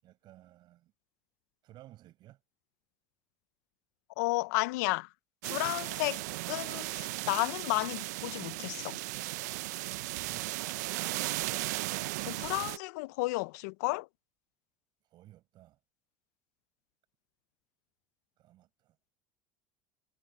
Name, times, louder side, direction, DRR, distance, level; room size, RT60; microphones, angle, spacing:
voice 1, 0.0-0.9 1.6-2.4 15.1-15.8 18.4-19.0, right 14 dB, 60° right, 6.2 m, -56 dB
voice 2, 4.2-5.1 5.4-9.0 12.3-14.1, left 23 dB, 80° left, 0.6 m, -32 dB
sound 1, 5.4-12.8, right 19 dB, 85° right, 0.6 m, -36 dB
supercardioid pair, 90°, 9 cm